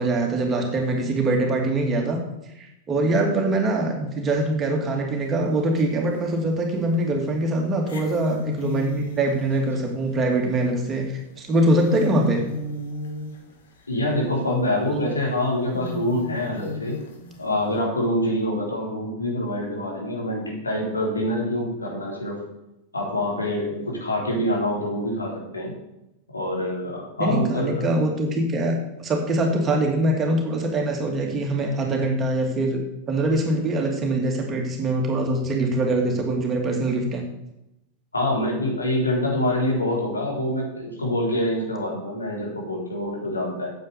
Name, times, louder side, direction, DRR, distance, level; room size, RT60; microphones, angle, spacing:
voice 1, 0.0-2.2 2.6-12.4 27.2-32.8 33.1-37.2, right 2 dB, 25° right, 2 dB, 2.5 m, -23 dB
sound 1, 5.2-5.3 5.8-6.5 6.9-7.0 7.8-14.1 14.4-14.5 15.1-15.2 15.7-17.8, left 1 dB, 60° left, 1.9 m, -33 dB
voice 2, 13.9-17.0 17.4-22.4 22.9-25.7 26.3-27.8 38.1-43.7, left 1 dB, 80° left, -2 dB, 3.9 m, -25 dB
9.3 x 8.1 x 6.9 m, 0.89 s
figure-of-eight pair, 90°, 0 cm